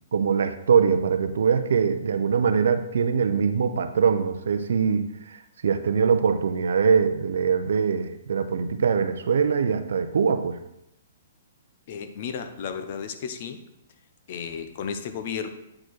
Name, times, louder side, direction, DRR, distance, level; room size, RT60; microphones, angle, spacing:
voice 1, 0.1-10.6, right 6 dB, 65° right, 10 dB, 0.6 m, -23 dB
voice 2, 11.9-13.7 14.3-15.5, left 7 dB, 35° left, 9 dB, 0.5 m, -33 dB
8.6 x 4.5 x 4.6 m, 0.83 s
hypercardioid pair, 180°, 0 cm